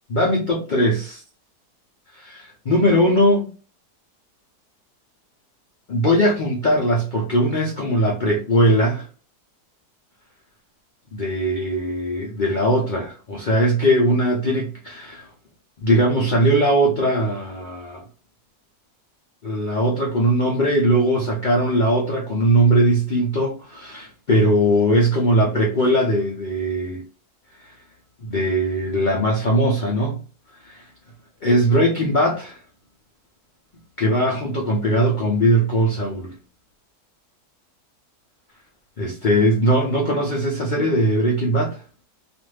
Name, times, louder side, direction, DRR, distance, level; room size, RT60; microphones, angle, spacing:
voice 1, 0.1-1.2 2.1-3.5 5.9-9.1 11.1-15.3 15.8-18.0 19.4-27.0 27.6-27.7 28.2-30.2 30.6-30.9 31.4-32.6 34.0-36.4 39.0-41.8, equal, 75° left, 0.4 m, -20 dB
2.5 x 2.5 x 3.2 m
omnidirectional pair, 1.7 m